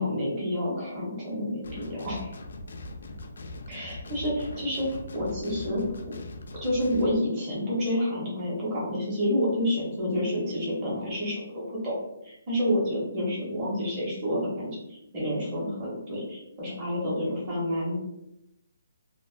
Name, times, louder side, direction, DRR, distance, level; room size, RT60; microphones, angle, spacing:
voice 1, 0.0-2.3 3.7-5.8 6.6-12.0 12.2-17.9, left 1 dB, 25° right, -6 dB, 0.8 m, -29 dB
sound 1, 1.6-7.2, left 2 dB, 70° left, 0.3 m, -41 dB
2.4 x 2.1 x 2.4 m, 0.86 s
hypercardioid pair, 165°, 0 cm